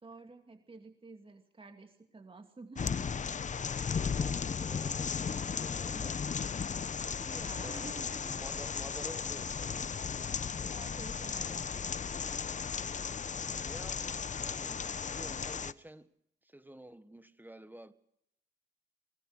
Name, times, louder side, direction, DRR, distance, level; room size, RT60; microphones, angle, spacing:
voice 1, 0.0-3.1 7.2-8.3 10.7-12.4, right 3 dB, 25° right, 2.5 m, -51 dB
sound 1, 2.8-15.7, left 6 dB, 40° left, 0.9 m, -35 dB
voice 2, 3.3-6.2 7.6-9.9 13.6-16.1 16.4-17.9, right 1 dB, 10° right, 1.5 m, -51 dB
24.5 x 19.0 x 6.5 m
cardioid pair, 80°, 20 cm